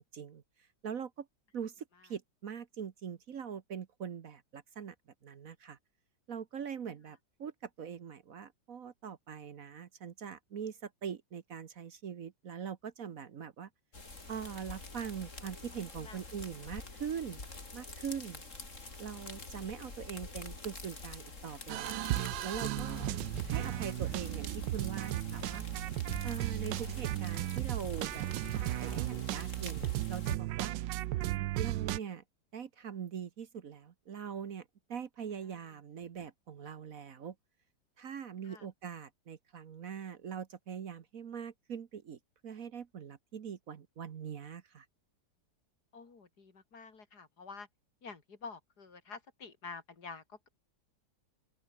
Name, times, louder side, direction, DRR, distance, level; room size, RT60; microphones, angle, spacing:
voice 1, 0.8-1.3 1.5-4.9 5.2-5.8 6.3-13.7 14.3-17.4 17.7-18.4 19.0-22.1 22.4-23.1 23.4-25.6 26.2-30.7 31.6-32.2 32.5-37.3 38.0-44.9, right 7 dB, 55° right, 1.4 m, -42 dB
sound 1, 13.9-30.4, left 3 dB, 45° left, 4.2 m, -46 dB
sound 2, 21.7-32.0, right 16 dB, 90° right, 1.3 m, -35 dB
voice 2, 45.9-47.7 48.0-50.5, left 4 dB, 65° left, 3.3 m, -49 dB
open air
omnidirectional pair, 1.9 m